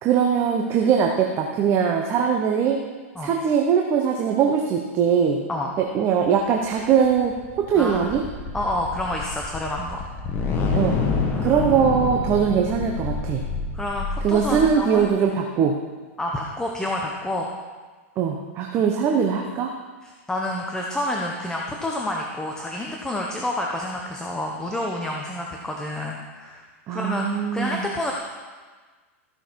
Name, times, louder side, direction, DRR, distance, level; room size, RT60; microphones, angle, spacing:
voice 1, 0.0-2.8 3.2-5.4 5.9-8.2 10.7-11.0 11.4-13.4 14.2-15.8 18.2-19.7 26.9-27.8, right 7 dB, 35° right, 2 dB, 1.0 m, -21 dB
sound 1, 6.7-15.1, left 4 dB, 30° left, 1.6 m, -28 dB
voice 2, 7.7-8.2 8.5-10.1 11.3-12.3 13.7-15.1 16.2-17.5 20.0-28.1, left 1 dB, 10° left, -1 dB, 1.0 m, -29 dB
15.0 x 6.4 x 4.7 m, 1.4 s
hypercardioid pair, 125°, 7 cm